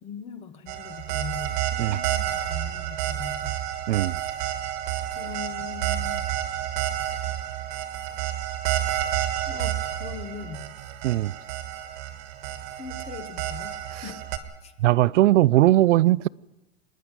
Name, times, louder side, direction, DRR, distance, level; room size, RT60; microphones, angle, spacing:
voice 1, 0.0-3.6 5.1-6.3 9.4-10.7 12.8-13.7 14.0-14.3 14.6-14.7, left 6 dB, 20° left, 1.0 m, -40 dB
sound 1, 0.7-14.4, right 11 dB, 35° right, 1.6 m, -30 dB
voice 2, 3.9-4.2 11.0-11.3 14.8-16.3, right 15 dB, 90° right, 0.6 m, -19 dB
sound 2, 5.6-7.8, right 3 dB, 10° right, 1.2 m, -49 dB
25.5 x 10.5 x 9.7 m
supercardioid pair, 175°, 35 cm